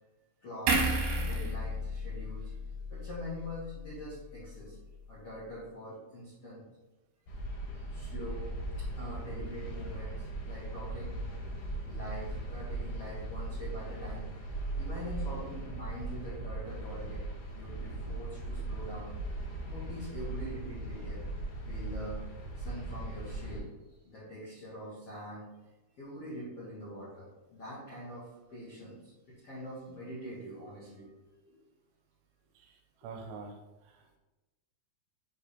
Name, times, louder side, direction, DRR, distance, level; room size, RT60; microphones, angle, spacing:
voice 1, 0.4-2.5 2.9-4.7 5.1-6.7 7.5-11.2 11.8-14.3 14.8-17.3 17.5-19.1 19.7-21.3 21.7-22.2 22.5-23.7 24.0-25.5 26.0-31.5, equal, 90° left, -8 dB, 1.3 m, -44 dB
sound 1, 0.7-4.0 4.4-4.6, right 1 dB, 70° right, 2.9 m, -33 dB
sound 2, 7.3-23.6, right 2 dB, 65° left, 2.7 m, -38 dB
voice 2, 32.6-34.2, right 4 dB, 85° right, 3 dB, 3.0 m, -47 dB
7.7 x 3.4 x 4.3 m, 1.1 s
omnidirectional pair, 5.5 m